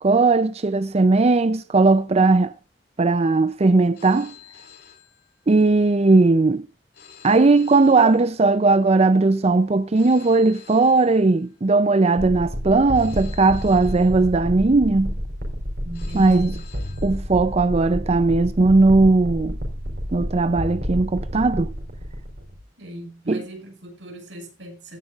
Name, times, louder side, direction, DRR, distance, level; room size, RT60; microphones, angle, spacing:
voice 1, 0.0-2.5 3.0-4.3 5.5-6.6 7.2-15.1 16.1-16.5 17.0-19.6 20.1-21.7 23.3-23.4, right 3 dB, 35° right, 0.5 m, -18 dB
Telephone, 3.9-5.8 6.9-8.8 9.9-11.8 12.9-14.8 15.9-17.8, left 9 dB, 60° left, 5.2 m, -49 dB
sound 1, 12.2-22.6, equal, 60° right, 4.5 m, -30 dB
voice 2, 15.8-16.6 22.8-25.0, right 1 dB, 90° right, 6.1 m, -38 dB
16.5 x 10.5 x 2.5 m
head